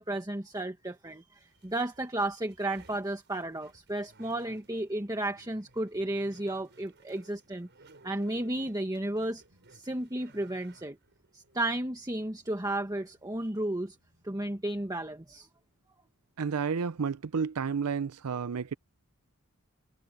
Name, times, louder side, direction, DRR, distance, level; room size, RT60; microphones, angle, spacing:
voice 1, 0.0-7.7 8.0-9.4 9.7-11.0 11.3-14.0 14.2-15.5, right 1 dB, 15° right, 1.5 m, -33 dB
sound 1, 1.4-15.3, right 2 dB, 55° right, 6.7 m, -60 dB
voice 2, 16.4-18.7, right 6 dB, 85° right, 0.5 m, -31 dB
head